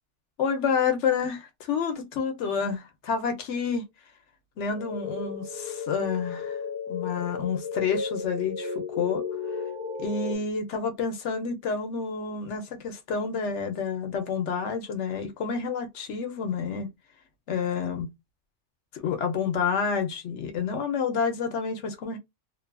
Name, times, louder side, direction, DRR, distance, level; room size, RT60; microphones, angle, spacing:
voice 1, 0.4-3.8 4.6-6.6 6.9-9.2 10.0-16.9 17.5-18.1 18.9-22.2, left 6 dB, 80° left, 1.0 m, -29 dB
sound 1, 4.7-10.4, left 4 dB, 45° left, 0.9 m, -34 dB
2.7 x 2.4 x 2.2 m
omnidirectional pair, 1.2 m